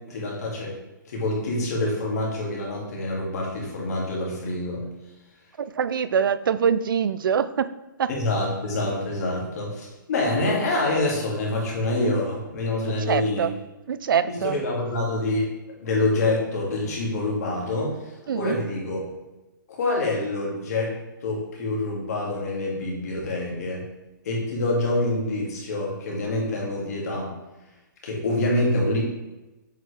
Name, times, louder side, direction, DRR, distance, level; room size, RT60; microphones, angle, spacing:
voice 1, 0.1-0.7 1.1-4.8 8.2-13.5 14.3-15.5 15.8-17.9 18.3-19.0 19.7-20.9 21.2-23.8 24.2-27.3 28.0-29.0, left 2 dB, 50° left, -2 dB, 2.1 m, -26 dB
voice 2, 5.6-7.7 8.0-8.1 13.1-13.5 13.9-14.6 18.3-18.6, right 7 dB, 80° right, 14 dB, 0.4 m, -24 dB
7.4 x 4.4 x 3.4 m, 1.0 s
hypercardioid pair, 170°, 11 cm